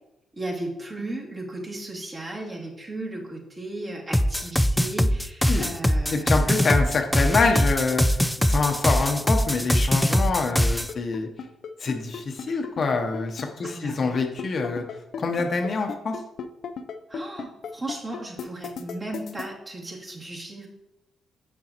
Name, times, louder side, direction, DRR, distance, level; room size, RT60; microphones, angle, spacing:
voice 1, 0.4-6.5 13.6-14.2 17.1-20.7, right 2 dB, 35° right, -4 dB, 2.5 m, -35 dB
sound 1, 4.1-10.9, equal, 5° left, 0.3 m, -22 dB
voice 2, 6.1-11.3 11.8-14.8 15.2-16.2, left 4 dB, 50° left, 4 dB, 0.8 m, -26 dB
sound 2, 10.8-19.5, left 6 dB, 70° left, 0.5 m, -35 dB
7.1 x 6.4 x 2.9 m, 0.90 s
cardioid pair, 70°, 0 cm